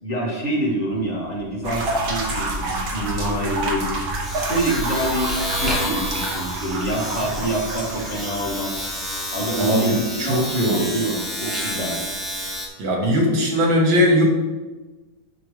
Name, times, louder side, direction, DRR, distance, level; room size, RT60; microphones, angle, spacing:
voice 1, 0.0-3.9 4.4-8.8 9.3-12.0, right 1 dB, 35° left, -4 dB, 2.1 m, -26 dB
Domestic sounds home sounds, 0.9-1.1 1.4-12.7, equal, ahead, 0.8 m, -30 dB
sound 1, 1.6-9.2, right 2 dB, 55° right, 1.5 m, -28 dB
voice 2, 9.5-11.0 12.8-14.2, equal, 75° right, -1 dB, 2.1 m, -19 dB
8.7 x 5.6 x 3.2 m, 1.2 s
omnidirectional pair, 2.1 m